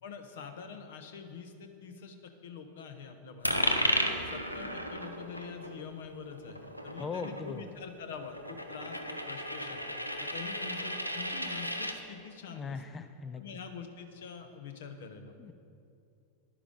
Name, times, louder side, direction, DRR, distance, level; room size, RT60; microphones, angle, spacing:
voice 1, 0.0-3.9 4.2-9.8 10.2-12.8 13.3-15.5, left 6 dB, 55° left, 7 dB, 1.1 m, -45 dB
Coin (dropping), 3.4-12.0, equal, 90° left, 0.8 m, -34 dB
voice 2, 6.9-7.6 12.5-13.4 15.4-15.5, left 5 dB, 20° left, 10 dB, 0.4 m, -39 dB
11.0 x 10.0 x 5.1 m, 2.5 s
figure-of-eight pair, 90°, 0 cm